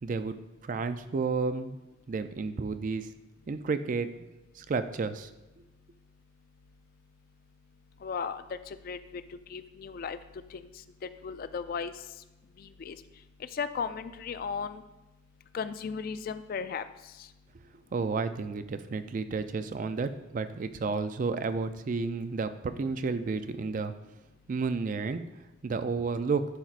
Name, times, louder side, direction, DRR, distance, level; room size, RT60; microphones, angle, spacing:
voice 1, 0.0-0.4 0.6-1.8 2.1-3.1 3.5-4.1 4.6-5.3 17.9-23.9 24.5-25.2 25.6-26.5, right 4 dB, 40° right, 11 dB, 0.3 m, -31 dB
voice 2, 8.0-10.2 10.5-12.0 12.6-13.0 13.4-14.8 15.5-17.3, left 6 dB, 45° left, 12 dB, 0.3 m, -36 dB
11.0 x 4.5 x 2.5 m, 1.0 s
head